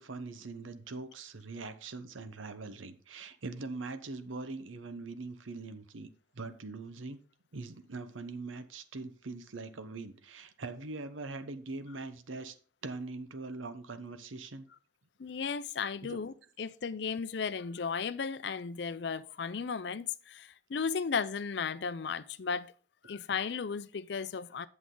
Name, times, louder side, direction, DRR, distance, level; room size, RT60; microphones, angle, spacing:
voice 1, 0.0-6.1 6.3-7.2 7.5-12.6 12.8-14.7 16.0-16.2, right 3 dB, 90° right, 0.9 m, -42 dB
voice 2, 15.2-22.7 23.0-24.7, left 6 dB, 60° left, 0.5 m, -35 dB
8.4 x 7.2 x 3.8 m
head